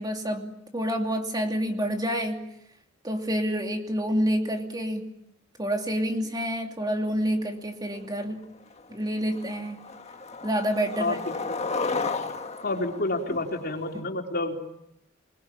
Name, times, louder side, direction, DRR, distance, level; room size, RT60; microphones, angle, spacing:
voice 1, 0.0-2.5 3.0-5.1 5.6-8.5 8.9-9.8 10.4-11.2 13.9-14.0, equal, 20° right, 3 dB, 2.8 m, -28 dB
Skateboard, 8.2-8.3 8.7-9.0 9.3-14.0, left 4 dB, 35° left, 1.6 m, -33 dB
voice 2, 10.9-11.3 12.6-14.5, left 2 dB, 50° left, 2 dB, 4.2 m, -29 dB
27.5 x 21.5 x 8.6 m, 0.80 s
head